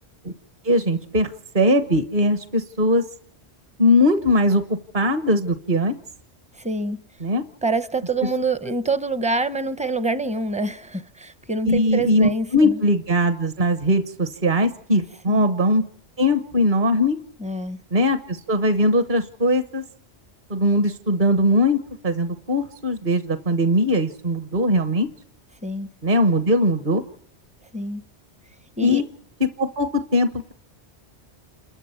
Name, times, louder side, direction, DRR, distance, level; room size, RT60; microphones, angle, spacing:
voice 1, 0.6-1.3 1.5-3.0 3.8-4.6 4.9-5.9 7.2-7.4 11.6-15.8 16.2-17.2 17.9-19.8 20.5-21.8 22.0-25.1 26.0-27.0 28.8-29.0 29.4-30.5, left 1 dB, 50° right, 1.3 m, -20 dB
voice 2, 6.6-7.0 7.6-12.8 15.3-15.5 17.4-17.8 25.6-25.9 27.7-28.0 28.8-29.0, right 2 dB, 10° right, 0.5 m, -26 dB
28.0 x 13.5 x 6.9 m
omnidirectional pair, 1.1 m